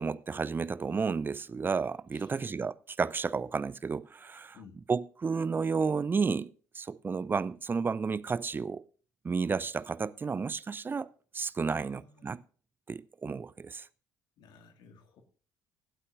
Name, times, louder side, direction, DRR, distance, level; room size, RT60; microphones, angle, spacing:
voice 1, 0.0-4.6 4.9-8.8 9.2-12.4 12.9-13.9, right 5 dB, 20° right, 0.5 m, -32 dB
voice 2, 2.1-2.5 4.5-4.8 11.7-12.4 14.4-15.2, left 5 dB, 55° left, 2.0 m, -55 dB
24.5 x 8.3 x 2.5 m
figure-of-eight pair, 50°, 9 cm